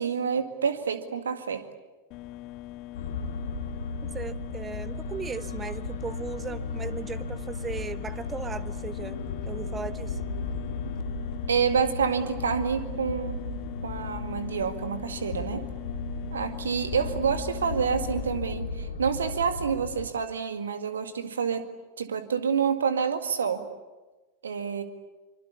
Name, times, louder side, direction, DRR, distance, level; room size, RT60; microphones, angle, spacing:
voice 1, 0.0-1.6 11.5-13.4 13.8-15.6 16.3-21.6 22.0-23.7 24.4-24.8, right 6 dB, 70° right, 9 dB, 2.0 m, -28 dB
sound 1, 2.1-18.4, left 15 dB, 40° left, 1.0 m, -42 dB
sound 2, 2.9-20.1, left 3 dB, 60° left, 2.1 m, -35 dB
voice 2, 4.0-10.2, right 5 dB, 15° right, 14 dB, 1.1 m, -37 dB
25.0 x 24.5 x 8.3 m, 1.2 s
figure-of-eight pair, 90°, 0 cm